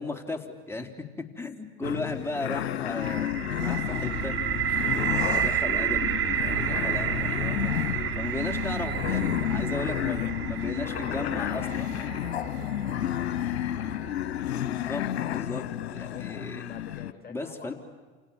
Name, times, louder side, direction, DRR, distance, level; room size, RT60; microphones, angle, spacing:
voice 1, 0.0-4.3 4.9-6.2 6.5-7.7 8.2-12.1 14.5-16.7 17.3-17.7, left 2 dB, 10° left, 4 dB, 3.7 m, -36 dB
sound 1, 1.8-17.1, left 12 dB, 80° left, 1.1 m, -31 dB
sound 2, 3.0-14.8, right 10 dB, 40° right, 1.7 m, -31 dB
Bowed string instrument, 5.9-11.2, right 11 dB, 65° right, 5.9 m, -44 dB
voice 2, 11.1-13.0 16.1-17.7, left 6 dB, 30° left, 3 dB, 7.4 m, -46 dB
29.0 x 29.0 x 7.2 m, 1.3 s
hypercardioid pair, 85°, 32 cm